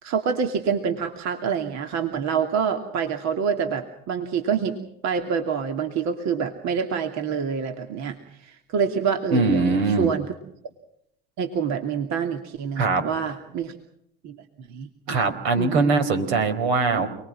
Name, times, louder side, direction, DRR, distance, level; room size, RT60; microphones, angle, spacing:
voice 1, 0.0-4.8 5.0-10.3 11.4-13.8 14.2-14.9 15.6-15.9, right 6 dB, 60° right, 5 dB, 2.7 m, -26 dB
voice 2, 9.3-10.1 12.8-13.0 15.1-17.1, right 3 dB, 80° right, 8 dB, 4.8 m, -21 dB
29.5 x 21.0 x 6.1 m, 0.75 s
hypercardioid pair, 70°, 30 cm